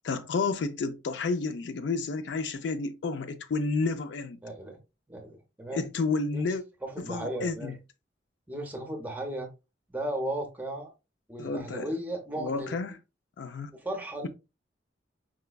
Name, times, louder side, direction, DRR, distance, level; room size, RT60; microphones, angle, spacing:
voice 1, 0.0-4.4 5.7-6.6 7.0-7.7 11.4-11.9 12.4-13.0 13.4-13.7, left 4 dB, 70° left, 0.4 m, -31 dB
voice 2, 4.4-4.8 5.1-5.9 6.3-6.5 6.8-7.8 8.5-9.5 9.9-10.9 11.3-12.8 13.7-14.3, right 1 dB, 10° right, 0.7 m, -35 dB
4.7 x 2.2 x 2.2 m
head